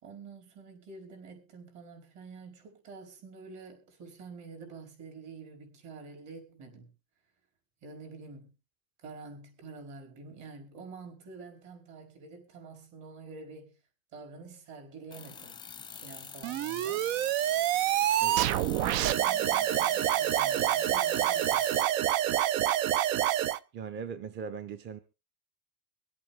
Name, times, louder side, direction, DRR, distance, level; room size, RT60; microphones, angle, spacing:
voice 1, 0.0-6.9 7.8-8.5 9.0-13.8 14.1-15.6 15.9-17.1 18.6-21.7, right 4 dB, 50° right, 4.7 m, -48 dB
sound 1, 15.1-21.8, left 6 dB, 10° left, 0.6 m, -44 dB
sound 2, 16.4-23.6, right 13 dB, 80° right, 0.7 m, -27 dB
voice 2, 18.2-18.6 23.7-25.0, right 6 dB, 30° right, 0.7 m, -39 dB
24.5 x 8.4 x 3.6 m
cardioid pair, 155°, 39 cm